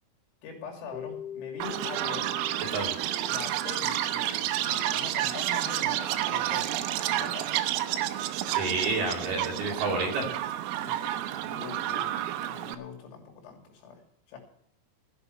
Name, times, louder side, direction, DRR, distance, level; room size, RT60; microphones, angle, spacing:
voice 1, 0.4-2.3 3.2-7.7 10.8-12.2 12.4-14.0 14.3-14.4, left 5 dB, 90° left, 2 dB, 5.4 m, -43 dB
Keyboard (musical), 0.9-4.2, left 8 dB, ahead, 1.5 m, -43 dB
Chirp tweet, 1.6-12.8, right 13 dB, 85° right, 3.5 m, -30 dB
voice 2, 8.5-10.4, right 3 dB, 55° right, 0 dB, 4.2 m, -29 dB
14.0 x 8.3 x 7.9 m, 0.72 s
omnidirectional pair, 5.8 m